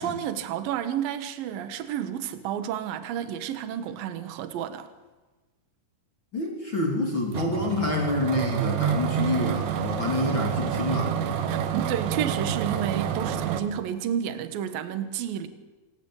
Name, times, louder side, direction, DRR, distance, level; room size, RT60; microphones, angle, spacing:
voice 1, 0.0-4.9 11.5-15.5, right 9 dB, 65° right, 2.9 m, -31 dB
voice 2, 6.3-11.1, left 2 dB, 30° left, 3.1 m, -27 dB
sound 1, 7.3-13.6, right 8 dB, 85° right, 3.6 m, -28 dB
26.5 x 17.5 x 8.8 m
omnidirectional pair, 4.9 m